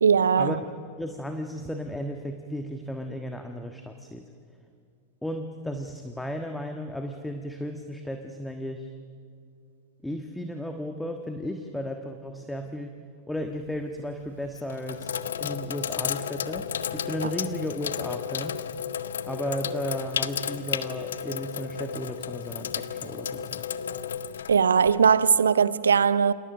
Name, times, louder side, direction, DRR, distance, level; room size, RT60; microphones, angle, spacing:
voice 1, 0.0-0.6 17.2-17.3 24.5-26.3, right 6 dB, 70° right, 0.7 m, -20 dB
voice 2, 1.0-4.2 5.2-8.9 10.0-12.9 13.3-18.6 19.3-23.6, equal, 5° left, 1.5 m, -34 dB
Sink (filling or washing), 13.4-13.8 14.4-25.4, left 8 dB, 65° left, 0.8 m, -33 dB
29.5 x 27.0 x 6.4 m
figure-of-eight pair, 90°, 0 cm